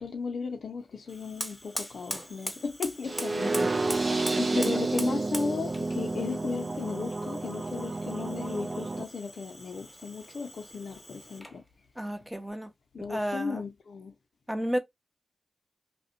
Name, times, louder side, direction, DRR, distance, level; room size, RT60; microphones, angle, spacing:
voice 1, 0.0-11.6 12.9-14.1, left 4 dB, 75° left, 0.5 m, -36 dB
Fire, 1.1-11.6, equal, 10° left, 1.1 m, -42 dB
sound 1, 3.0-9.0, right 3 dB, 45° right, 0.4 m, -30 dB
voice 2, 3.4-3.7 4.3-4.8 12.0-12.7 13.1-13.6 14.5-14.8, equal, 10° right, 0.7 m, -33 dB
2.7 x 2.1 x 2.4 m
cardioid pair, 50°, 0 cm